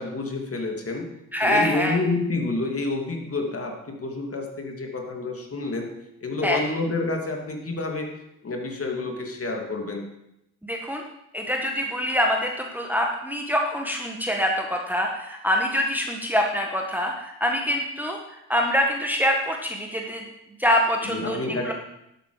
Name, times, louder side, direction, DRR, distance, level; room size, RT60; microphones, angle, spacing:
voice 1, 0.0-8.1 8.4-10.1 21.0-21.7, left 3 dB, 30° left, 2 dB, 2.7 m, -29 dB
voice 2, 1.3-2.0 6.4-6.6 10.6-11.0 11.3-18.2 18.5-20.2 20.6-21.4 21.6-21.7, equal, 5° right, 1 dB, 1.6 m, -25 dB
12.0 x 8.4 x 5.0 m, 0.82 s
hypercardioid pair, 60°, 43 cm